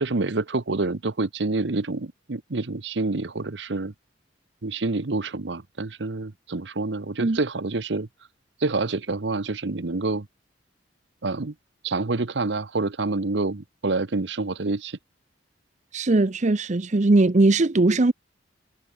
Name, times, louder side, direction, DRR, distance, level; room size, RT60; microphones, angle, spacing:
voice 1, 0.0-3.9 4.6-8.1 8.6-10.3 11.2-11.5 11.8-15.0, right 3 dB, 70° right, 1.0 m, -27 dB
voice 2, 15.9-18.1, right 2 dB, 40° right, 0.7 m, -19 dB
head